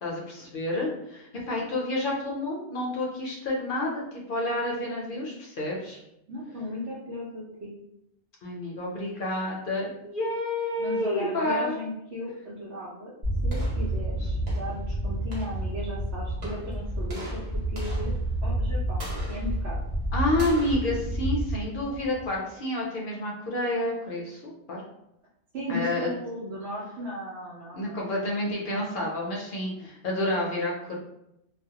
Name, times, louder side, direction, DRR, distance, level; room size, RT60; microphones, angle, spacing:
voice 1, 0.0-6.0 8.4-11.8 20.1-24.8 25.7-26.1 27.7-30.9, left 1 dB, 60° left, -2 dB, 0.6 m, -29 dB
voice 2, 6.3-7.7 10.8-13.1 13.4-17.4 17.7-18.1 18.4-19.8 25.5-28.1 28.7-28.8 29.8-29.9, left 1 dB, 80° right, -6 dB, 1.0 m, -36 dB
sound 1, 13.2-22.4, right 1 dB, 40° right, 0.8 m, -30 dB
2.3 x 2.1 x 2.7 m, 0.82 s
omnidirectional pair, 1.2 m